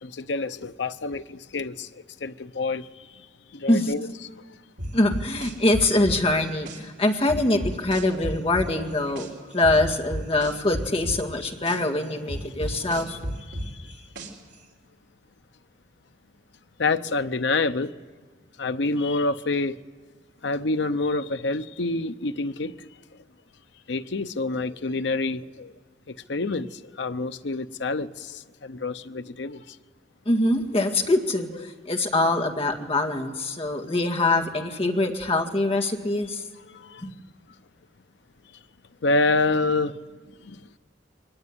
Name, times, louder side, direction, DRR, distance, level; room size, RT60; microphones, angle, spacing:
voice 1, 0.0-3.3 3.5-4.5 13.1-13.2 13.5-14.0 16.8-17.9 18.6-19.8 20.4-22.9 23.9-25.7 26.1-29.8 36.7-37.1 39.0-40.0 40.4-40.6, left 3 dB, 75° left, 0.7 m, -28 dB
sound 1, 4.8-6.8 7.3-9.3 9.6-11.8 12.3-14.5, equal, 75° right, 3.6 m, -32 dB
voice 2, 4.9-9.3 9.5-13.2 30.3-36.4 37.0-37.1, left 2 dB, 30° left, 2.0 m, -24 dB
23.0 x 19.5 x 9.7 m
head